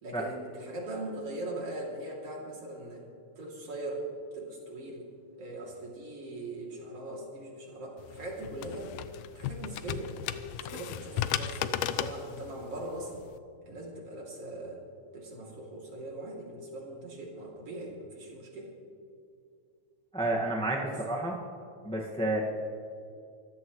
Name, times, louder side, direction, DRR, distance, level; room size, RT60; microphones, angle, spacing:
voice 1, 0.0-3.0 3.4-4.1 4.3-5.1 5.4-8.9 9.4-10.1 10.6-13.1 13.6-14.8 15.1-18.7 20.8-21.0 22.3-22.4, right 2 dB, 50° right, -3 dB, 3.7 m, -40 dB
sound 1, 8.0-13.4, left 10 dB, 75° left, 1.7 m, -35 dB
voice 2, 20.1-21.3 21.8-22.4, right 2 dB, 5° left, -2 dB, 0.5 m, -30 dB
24.5 x 15.0 x 3.1 m, 2.5 s
omnidirectional pair, 3.4 m